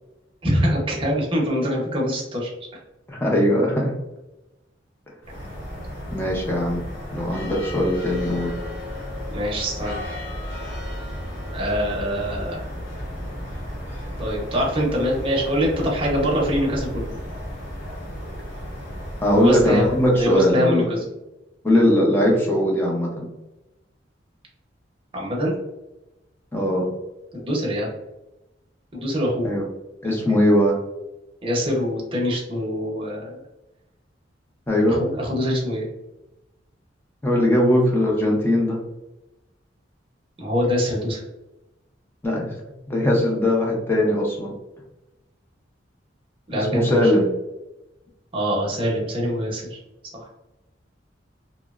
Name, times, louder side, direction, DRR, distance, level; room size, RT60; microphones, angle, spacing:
voice 1, 0.4-2.5 9.3-10.0 11.5-12.6 14.2-17.1 19.3-19.9 20.2-21.0 25.1-25.6 27.3-27.9 28.9-29.5 30.0-30.4 31.4-33.4 34.9-35.9 40.4-41.2 46.5-47.1 48.3-49.8, equal, 30° right, -3 dB, 0.7 m, -24 dB
voice 2, 3.1-4.0 6.1-6.8 7.1-8.5 19.2-20.9 21.6-23.3 26.5-26.9 29.4-29.6 30.0-30.8 34.7-35.0 37.2-38.8 42.2-42.5 42.9-44.5 46.5-47.3, left 1 dB, 10° left, -2 dB, 0.5 m, -20 dB
sound 1, 5.2-20.7, equal, 80° left, 1.0 m, -34 dB
2.8 x 2.0 x 2.3 m, 0.96 s
head